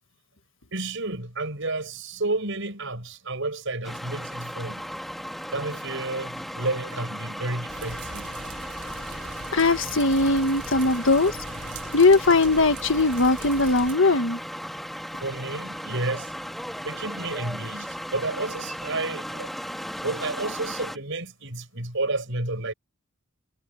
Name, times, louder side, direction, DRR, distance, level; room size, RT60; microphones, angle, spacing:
voice 1, 0.7-4.9 5.5-8.3 15.2-16.3 16.8-19.5 20.0-22.7, right 2 dB, 60° right, 7.3 m, -31 dB
sound 1, 3.8-21.0, equal, ahead, 2.3 m, -36 dB
sound 2, 7.7-14.0, right 3 dB, 90° right, 4.4 m, -41 dB
voice 2, 9.5-11.4 11.9-14.4, left 3 dB, 60° left, 1.6 m, -20 dB
head